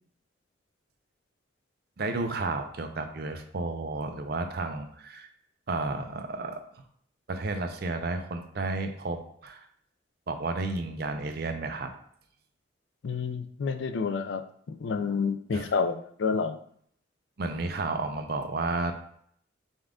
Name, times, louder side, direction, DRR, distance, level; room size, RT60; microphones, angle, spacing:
voice 1, 2.0-5.3 5.7-6.6 7.3-9.7 10.3-11.9 15.5-15.7 17.4-18.9, right 3 dB, 55° right, 6 dB, 0.5 m, -32 dB
voice 2, 13.0-14.4 14.7-16.6, left 5 dB, 70° left, 8 dB, 0.4 m, -29 dB
5.4 x 2.4 x 3.6 m, 0.64 s
head